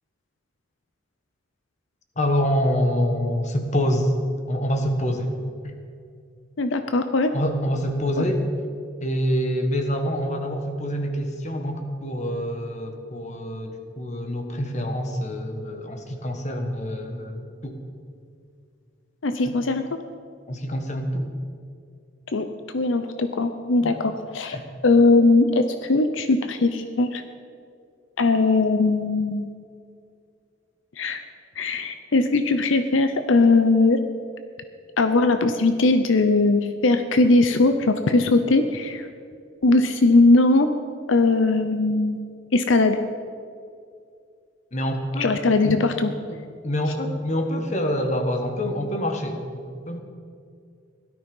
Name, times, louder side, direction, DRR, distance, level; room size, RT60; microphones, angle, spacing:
voice 1, 2.2-4.1 4.5-5.3 5.6-5.7 7.3-8.4 9.0-17.8 19.4-19.6 20.5-21.3 23.8-24.0 24.5-24.6 44.7-45.4 45.6-45.8 46.3-50.0, equal, 35° left, 5 dB, 1.5 m, -26 dB
voice 2, 6.6-7.3 8.2-8.3 19.2-19.9 22.3-22.5 22.7-24.6 24.8-27.2 28.2-29.5 31.0-31.2 31.6-34.0 35.0-39.1 39.6-40.7 41.1-42.2 42.5-43.0 45.2-46.1, left 3 dB, 75° left, 8 dB, 0.7 m, -20 dB
17.0 x 12.5 x 5.4 m, 2.3 s
head